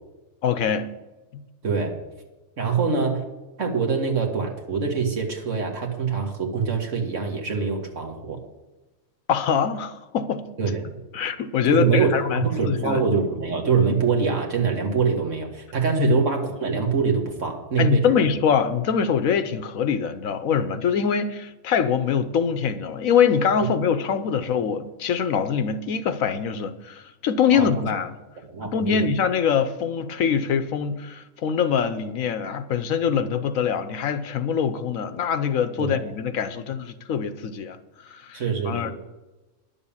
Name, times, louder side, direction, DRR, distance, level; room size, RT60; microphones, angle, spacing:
voice 1, 0.4-0.9 1.3-1.4 9.3-10.5 11.1-13.0 16.0-16.2 17.8-28.1 28.6-37.8 38.1-38.9, left 7 dB, 80° left, 1.2 m, -24 dB
voice 2, 1.6-1.9 2.6-3.3 3.6-8.4 10.6-10.8 11.6-18.2 27.5-27.7 28.4-29.1 35.8-36.0 38.3-38.9, right 5 dB, 60° right, 2.1 m, -24 dB
10.5 x 7.2 x 7.2 m
omnidirectional pair, 1.4 m